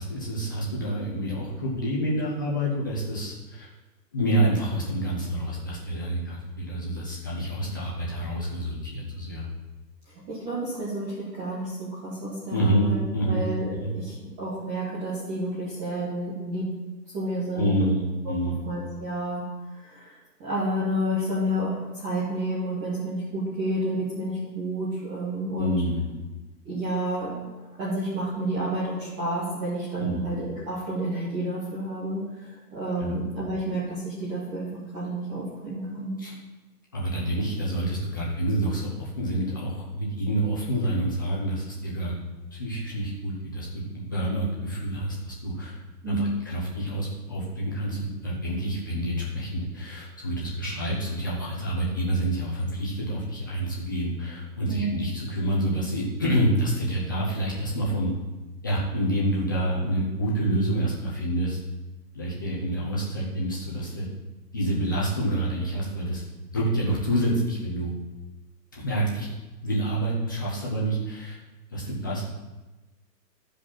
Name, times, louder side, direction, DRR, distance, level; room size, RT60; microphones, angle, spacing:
voice 1, 0.0-3.7 4.1-9.5 12.5-13.9 17.5-18.6 25.6-26.1 30.0-30.2 33.0-33.2 36.2-36.3 36.9-42.1 42.5-45.8 46.1-58.1 58.6-61.6 62.1-64.1 64.5-66.2 66.5-67.9 68.7-69.3 69.6-71.4 71.7-72.2, right 1 dB, 15° left, -6 dB, 0.6 m, -28 dB
voice 2, 10.0-13.0 13.3-16.6 17.1-17.9 18.2-18.3 18.6-19.4 19.8-20.1 20.4-25.8 26.6-27.3 27.8-34.7 34.9-36.2 46.0-46.4 54.7-55.0, right 1 dB, 15° right, -10 dB, 1.4 m, -30 dB
13.5 x 5.0 x 4.2 m, 1.1 s
hypercardioid pair, 160°, 50 cm